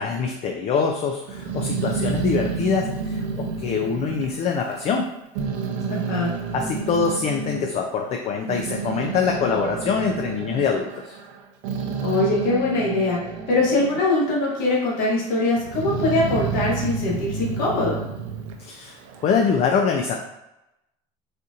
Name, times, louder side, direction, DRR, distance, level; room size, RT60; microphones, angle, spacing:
voice 1, 0.0-5.1 6.5-11.1 18.6-19.0 19.2-20.1, left 5 dB, 40° left, 2 dB, 0.4 m, -24 dB
Growling, 1.3-5.0 5.3-7.7 8.2-14.1 14.4-15.1 15.6-19.3, right 5 dB, 90° right, 0.5 m, -30 dB
voice 2, 5.9-6.3 12.0-13.2 13.5-18.0, left 2 dB, 75° left, -5 dB, 1.3 m, -22 dB
4.2 x 2.6 x 2.4 m, 0.92 s
supercardioid pair, 105°, 16 cm